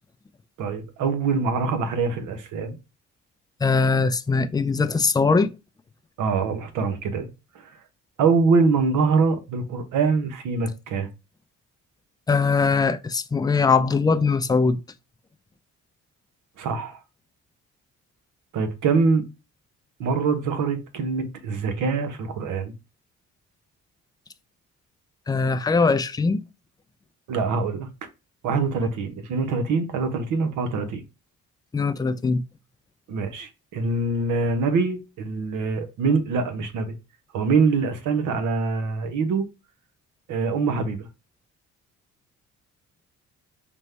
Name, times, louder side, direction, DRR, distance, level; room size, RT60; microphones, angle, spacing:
voice 1, 0.6-2.8 6.2-7.3 8.2-11.1 16.6-17.0 18.5-19.2 20.0-22.7 27.3-27.9 28.4-31.0 33.1-36.9 37.3-39.4 40.3-41.1, right 4 dB, 85° right, 0.9 m, -24 dB
voice 2, 3.6-5.5 12.3-14.8 25.3-26.4 31.7-32.4, left 4 dB, 15° left, 0.3 m, -21 dB
5.2 x 2.2 x 3.2 m
cardioid pair, 90°, 30 cm